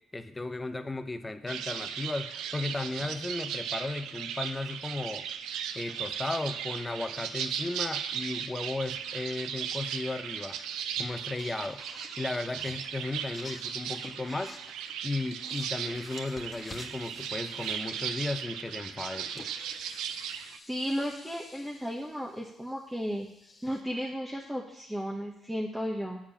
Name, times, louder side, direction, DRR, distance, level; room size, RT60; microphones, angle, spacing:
voice 1, 0.1-5.3 5.7-10.6 11.0-11.8 12.2-14.5 15.0-19.5, left 2 dB, 20° left, 9 dB, 0.8 m, -35 dB
sound 1, 1.5-20.6, right 8 dB, 80° right, 0.5 m, -37 dB
sound 2, 9.1-9.3 11.0-11.1 11.4-15.0 15.3-18.2 19.0-23.8, left 3 dB, 35° left, 1.4 m, -51 dB
voice 2, 20.4-23.3 23.6-26.2, equal, 10° right, -2 dB, 1.2 m, -34 dB
7.3 x 4.9 x 7.1 m, 0.79 s
supercardioid pair, 60°, 0 cm